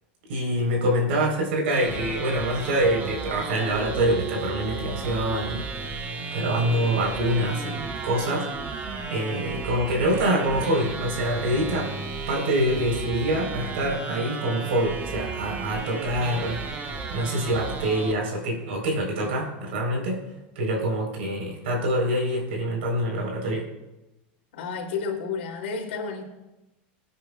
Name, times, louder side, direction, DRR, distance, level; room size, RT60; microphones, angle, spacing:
voice 1, 0.3-8.5 9.1-11.9 12.3-16.6 17.1-20.2 20.6-23.7, right 1 dB, 90° right, -1 dB, 4.1 m, -25 dB
sound 1, 1.7-18.1, right 4 dB, 30° right, 1.3 m, -34 dB
voice 2, 24.5-26.2, left 5 dB, 90° left, 0 dB, 3.1 m, -31 dB
22.0 x 9.7 x 2.4 m, 1.0 s
supercardioid pair, 140°, 6 cm